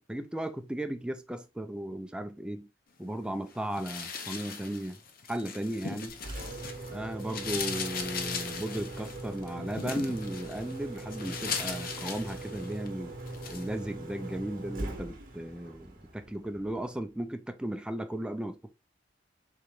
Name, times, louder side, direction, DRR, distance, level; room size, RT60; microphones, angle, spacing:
voice 1, 0.0-2.7 3.0-5.0 5.3-6.1 6.9-13.1 13.5-18.7, right 1 dB, 5° right, 0.4 m, -36 dB
sound 1, 3.7-6.9 7.2-12.9 13.3-13.7, left 5 dB, 50° left, 0.7 m, -38 dB
Engine, 6.1-17.0, right 2 dB, 50° right, 0.9 m, -41 dB
3.9 x 3.3 x 3.0 m
head